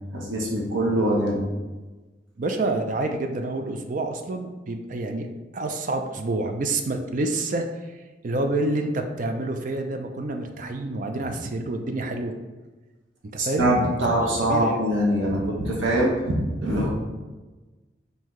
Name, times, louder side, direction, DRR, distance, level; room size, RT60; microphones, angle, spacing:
voice 1, 0.1-1.4 13.4-16.9, right 1 dB, 85° right, -2 dB, 0.8 m, -23 dB
voice 2, 2.4-5.3 5.5-7.7 8.2-12.3 13.3-13.7 14.2-14.9, right 2 dB, 45° right, 5 dB, 0.4 m, -28 dB
5.6 x 2.7 x 3.1 m, 1.2 s
head